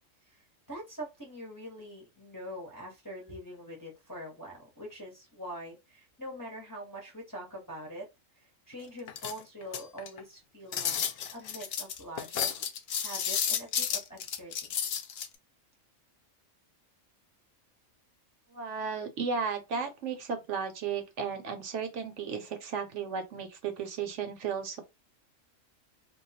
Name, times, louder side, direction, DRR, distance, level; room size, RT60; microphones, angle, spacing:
voice 1, 0.3-8.0 8.4-11.1 11.3-12.5 13.0-14.7, equal, 20° left, 0.7 m, -44 dB
sound 1, 9.1-10.2 10.7-15.3, left 8 dB, 65° left, 0.7 m, -32 dB
voice 2, 18.5-24.8, right 6 dB, 70° right, 0.9 m, -34 dB
2.3 x 2.3 x 4.0 m
omnidirectional pair, 1.4 m